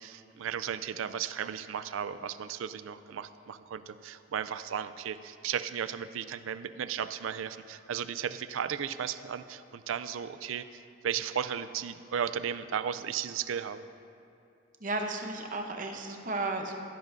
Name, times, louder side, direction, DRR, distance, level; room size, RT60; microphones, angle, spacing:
voice 1, 0.0-13.9, right 8 dB, 75° right, 13 dB, 0.4 m, -35 dB
voice 2, 14.8-16.8, right 2 dB, 40° right, 4 dB, 0.8 m, -34 dB
16.5 x 10.5 x 2.6 m, 2.6 s
head